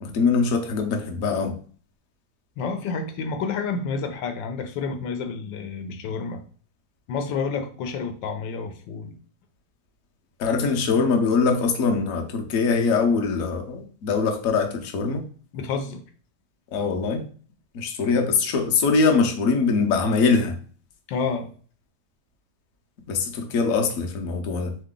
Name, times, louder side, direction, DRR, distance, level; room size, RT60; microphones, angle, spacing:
voice 1, 0.0-1.5 10.4-15.2 16.7-17.2 17.7-20.6 23.1-24.8, left 4 dB, 60° left, 3 dB, 1.0 m, -22 dB
voice 2, 2.6-6.4 7.1-9.2 15.5-16.0 21.1-21.5, left 5 dB, 85° left, 6 dB, 1.4 m, -29 dB
3.8 x 3.2 x 3.7 m, 0.43 s
omnidirectional pair, 1.9 m